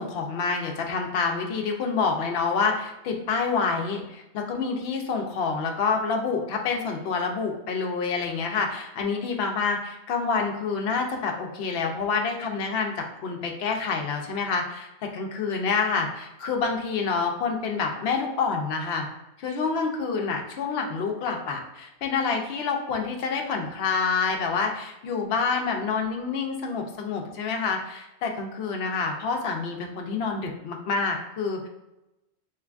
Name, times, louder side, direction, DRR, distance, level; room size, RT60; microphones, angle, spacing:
voice 1, 0.0-19.0 19.4-31.7, left 5 dB, 70° left, 2 dB, 0.8 m, -27 dB
3.4 x 3.1 x 2.4 m, 0.95 s
omnidirectional pair, 1.1 m